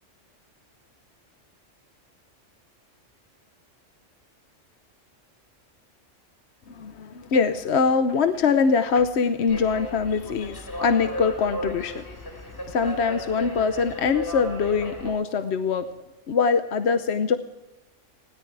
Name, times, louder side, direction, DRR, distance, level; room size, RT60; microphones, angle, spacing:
voice 1, 6.7-12.0 12.3-12.4 12.7-15.9 16.3-17.4, left 5 dB, 60° left, 9 dB, 1.1 m, -23 dB
sound 1, 9.5-15.1, left 1 dB, 15° left, 4.4 m, -35 dB
20.5 x 17.5 x 3.4 m, 0.97 s
omnidirectional pair, 1.3 m